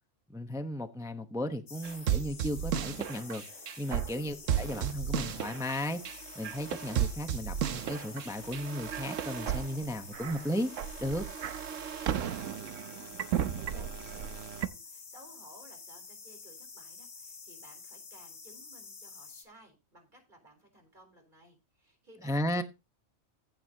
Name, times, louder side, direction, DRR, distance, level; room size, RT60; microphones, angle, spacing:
voice 1, 0.3-3.4 3.8-6.0 6.4-10.7 11.0-11.2 22.2-22.6, equal, 5° right, 0.8 m, -35 dB
sound 1, 1.7-19.4, left 4 dB, 55° left, 1.7 m, -49 dB
sound 2, 1.8-14.7, right 10 dB, 75° right, 1.1 m, -34 dB
voice 2, 12.1-13.1 13.5-22.6, right 1 dB, 35° right, 4.0 m, -58 dB
15.0 x 6.8 x 2.8 m
omnidirectional pair, 1.4 m